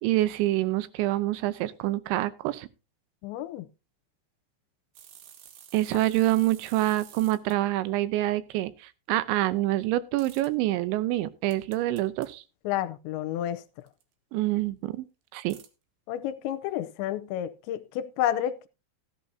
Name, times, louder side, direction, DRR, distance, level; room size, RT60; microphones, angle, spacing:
voice 1, 0.0-2.7 5.7-12.4 14.3-15.1 15.3-15.6, right 16 dB, 85° right, 3.1 m, -26 dB
voice 2, 3.2-3.7 12.6-13.6 16.1-18.7, left 11 dB, 80° left, 2.9 m, -30 dB
sound 1, 4.9-7.6 10.2-10.5 11.5-12.3 13.9-14.0 15.5-15.7, right 9 dB, 65° right, 2.9 m, -50 dB
15.0 x 11.0 x 2.8 m
omnidirectional pair, 5.3 m